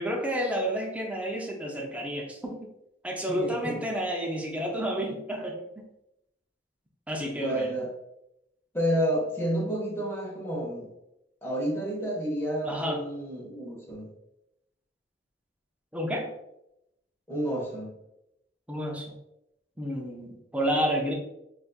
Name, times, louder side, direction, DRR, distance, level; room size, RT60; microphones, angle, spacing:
voice 1, 0.0-2.7 3.0-5.7 7.1-7.8 12.6-13.1 15.9-16.3 18.7-19.1 19.8-21.1, equal, 10° right, 0 dB, 0.5 m, -30 dB
voice 2, 3.3-3.8 7.2-7.9 8.7-10.9 11.4-14.1 17.3-17.9, equal, 15° left, -3 dB, 1.1 m, -30 dB
4.0 x 2.5 x 2.3 m, 0.84 s
head